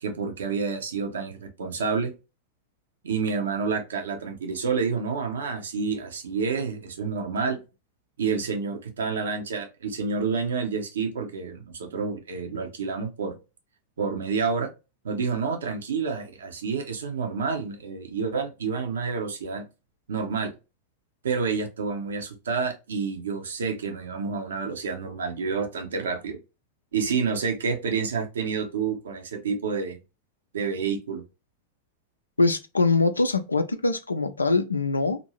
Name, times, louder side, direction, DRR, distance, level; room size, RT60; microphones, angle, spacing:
voice 1, 0.0-2.1 3.0-7.6 8.2-13.4 14.0-14.7 15.0-19.7 20.1-20.5 21.2-26.4 26.9-30.0 30.5-31.2, right 5 dB, 65° right, 0.7 m, -29 dB
voice 2, 32.4-35.2, left 3 dB, 80° left, 0.3 m, -23 dB
2.6 x 2.5 x 2.9 m
figure-of-eight pair, 90°, 0 cm